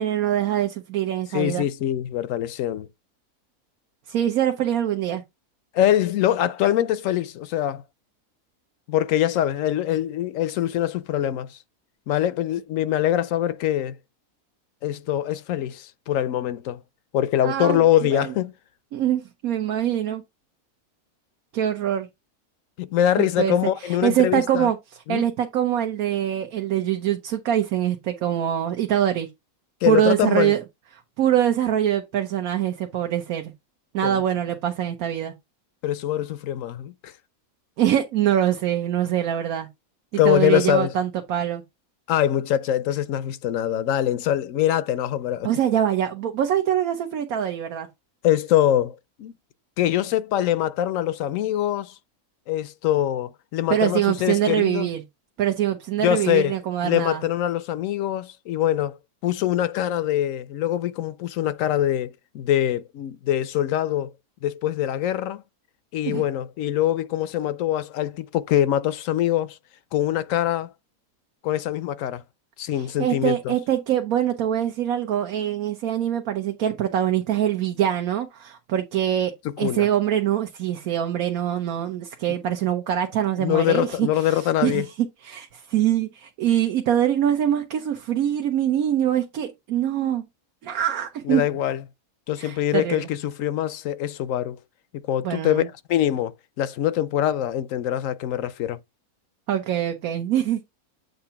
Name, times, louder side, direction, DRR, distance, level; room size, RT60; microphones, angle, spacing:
voice 1, 0.0-1.6 4.1-5.2 17.4-17.8 18.1-18.3 18.9-20.2 21.5-22.1 23.2-24.8 25.1-29.3 29.8-30.6 31.2-33.5 33.9-35.3 37.8-39.7 40.2-41.6 45.4-47.9 53.7-55.0 55.4-57.2 66.0-66.2 72.7-79.3 79.6-84.9 85.2-90.3 90.6-91.4 92.4-93.1 95.2-95.7 99.5-100.6, right 10 dB, 70° right, 1.2 m, -24 dB
voice 2, 1.3-2.9 5.7-7.8 8.9-11.6 12.1-13.9 14.8-16.8 17.1-18.5 22.8-24.7 25.1-25.3 29.8-30.5 34.0-34.2 35.8-37.1 40.1-40.9 42.1-45.5 48.2-49.3 49.8-51.9 52.5-54.9 56.0-56.5 56.8-59.0 59.2-62.1 62.3-64.1 64.4-65.4 65.9-69.6 69.9-70.7 71.4-72.2 72.6-73.5 79.6-79.9 82.3-82.4 83.4-84.9 91.3-91.8 92.3-94.6 95.1-98.8, left 12 dB, 70° left, 0.9 m, -23 dB
7.8 x 2.8 x 5.6 m
omnidirectional pair, 1.6 m